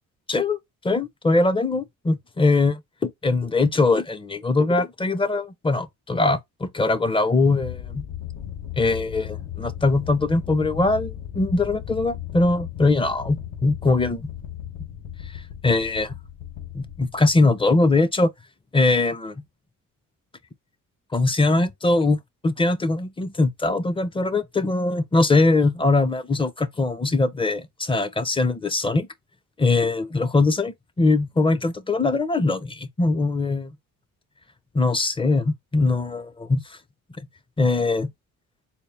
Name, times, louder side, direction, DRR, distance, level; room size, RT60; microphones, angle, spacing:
voice 1, 0.3-0.6 0.8-8.0 8.8-14.3 15.6-16.2 16.7-18.3 18.7-19.3 21.1-22.2 22.4-29.1 29.6-33.7 34.7-36.8 37.6-38.1, left 3 dB, 15° left, 0.6 m, -21 dB
sound 1, 7.6-17.7, left 11 dB, 65° left, 1.2 m, -36 dB
4.2 x 2.1 x 3.3 m
cardioid pair, 95°, 33 cm